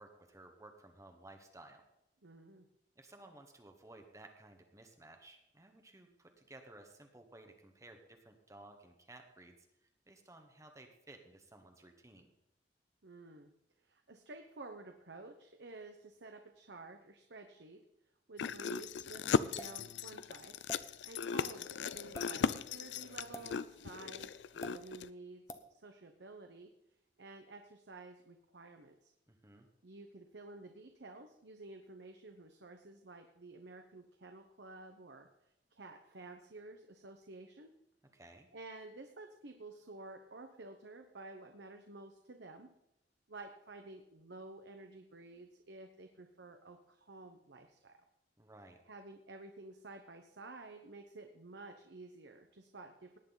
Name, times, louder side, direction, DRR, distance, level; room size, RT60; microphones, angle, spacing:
voice 1, 0.0-1.8 2.9-9.6 9.8-12.3 29.3-29.7 38.1-38.5 48.4-48.8, right 2 dB, 15° right, 4 dB, 1.3 m, -56 dB
voice 2, 2.2-2.7 13.0-13.5 13.8-17.8 18.3-20.5 21.0-25.4 25.7-26.7 27.2-29.1 29.8-35.3 35.7-37.7 38.5-42.7 43.3-48.0 48.9-53.2, right 2 dB, 75° right, 5 dB, 1.1 m, -52 dB
sound 1, 18.4-25.1, left 6 dB, 75° left, 0.4 m, -37 dB
sound 2, 19.6-19.8 20.7-20.8 22.0-22.3 23.3-23.5 24.6-24.8 25.5-25.7, left 1 dB, 15° left, 0.9 m, -46 dB
18.0 x 9.7 x 4.1 m, 0.82 s
head